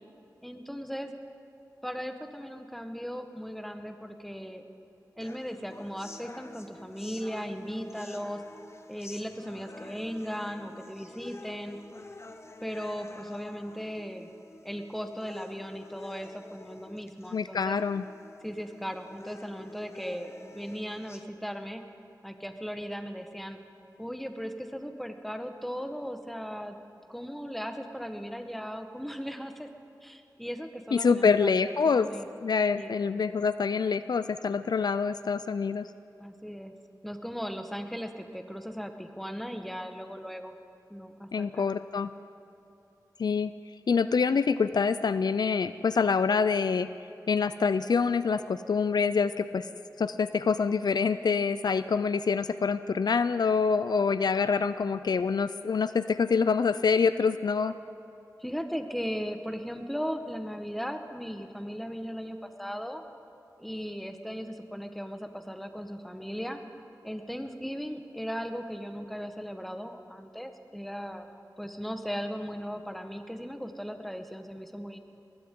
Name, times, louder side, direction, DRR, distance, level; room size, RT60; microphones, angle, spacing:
voice 1, 0.4-1.1 1.8-4.6 5.2-8.4 8.9-11.8 12.6-14.3 14.6-17.8 18.4-21.8 22.2-23.6 24.0-26.8 27.1-29.7 30.0-31.5 31.8-32.3 32.7-32.9 36.2-36.7 37.0-40.5 40.9-41.7 58.4-63.0 63.6-66.6 67.0-71.3 71.6-75.0, equal, ahead, 6 dB, 1.2 m, -37 dB
sound 1, 5.2-21.2, left 2 dB, 40° left, 0.9 m, -48 dB
voice 2, 17.3-18.0 30.9-32.1 32.4-35.9 41.3-42.1 43.2-43.5 43.9-46.9 47.3-49.7 50.0-57.7, left 5 dB, 70° left, 13 dB, 0.4 m, -26 dB
21.0 x 16.0 x 3.7 m, 2.7 s
wide cardioid pair, 55°, 7 cm